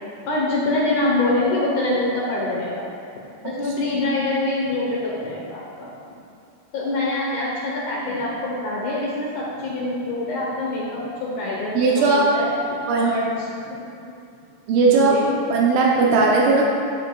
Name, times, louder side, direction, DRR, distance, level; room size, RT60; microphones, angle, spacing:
voice 1, 0.3-3.2 3.4-5.9 6.7-12.5 12.9-13.3 13.7-13.8 14.9-15.3 16.1-16.2, left 2 dB, 75° left, -5 dB, 1.8 m, -25 dB
voice 2, 11.8-12.3 12.9-13.1 14.7-15.2 15.5-16.7, right 4 dB, 90° right, -3 dB, 1.8 m, -17 dB
15.0 x 5.1 x 2.3 m, 2.5 s
omnidirectional pair, 4.8 m